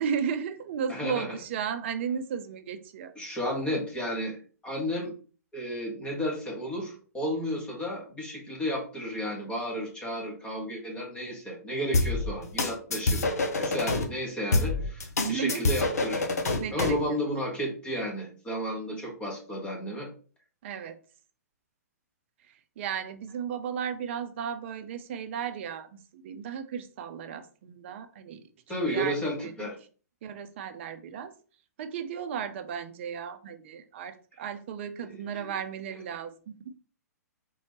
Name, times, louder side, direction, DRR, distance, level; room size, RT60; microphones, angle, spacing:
voice 1, 0.0-3.1 15.2-15.7 16.6-17.2 20.6-21.0 22.5-28.4 28.9-29.7 30.2-31.3 31.8-36.7, right 7 dB, 45° right, 10 dB, 0.6 m, -34 dB
voice 2, 0.9-1.4 3.1-4.4 4.6-5.1 5.5-13.2 13.5-16.3 16.7-20.1 28.7-29.7 35.3-35.5, equal, 10° left, -2 dB, 1.6 m, -32 dB
sound 1, 11.9-14.0 14.5-17.0, left 2 dB, 65° left, 0.9 m, -26 dB
4.2 x 3.8 x 3.0 m, 0.39 s
figure-of-eight pair, 120°, 9 cm